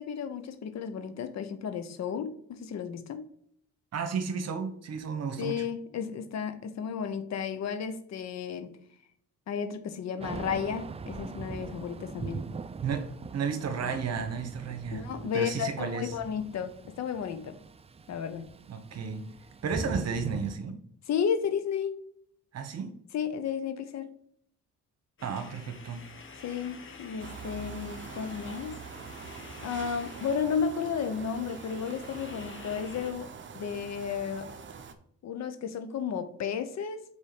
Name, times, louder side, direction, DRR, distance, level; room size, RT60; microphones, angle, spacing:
voice 1, 0.0-3.2 5.4-8.7 9.5-12.4 14.9-17.6 18.1-18.4 19.9-20.0 21.1-22.0 23.1-24.1 26.4-28.8 29.6-33.3 33.5-34.5 35.2-37.0, left 7 dB, 60° left, 0.9 m, -33 dB
voice 2, 3.9-5.6 12.8-15.1 15.3-16.1 18.7-19.3 19.6-20.8 22.5-22.9 25.2-26.0, right 5 dB, 55° right, 1.2 m, -33 dB
Thunder / Rain, 10.2-20.6, right 4 dB, 20° right, 0.3 m, -41 dB
sound 1, 25.2-33.1, left 4 dB, 40° left, 1.2 m, -48 dB
sound 2, 27.2-34.9, right 6 dB, 40° right, 0.8 m, -44 dB
5.5 x 4.8 x 5.0 m
cardioid pair, 90°, 30 cm